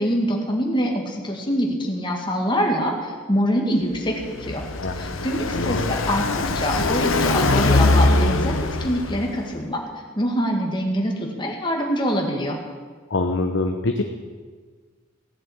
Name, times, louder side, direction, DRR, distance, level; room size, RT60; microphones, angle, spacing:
voice 1, 0.0-4.6 5.0-9.8 10.2-12.6, equal, 25° left, 1 dB, 2.0 m, -24 dB
Car passing by, 3.9-9.5, left 2 dB, 85° left, 1.0 m, -22 dB
voice 2, 5.5-5.9 13.1-14.0, left 2 dB, 65° left, 4 dB, 0.9 m, -24 dB
16.0 x 7.4 x 8.7 m, 1.5 s
head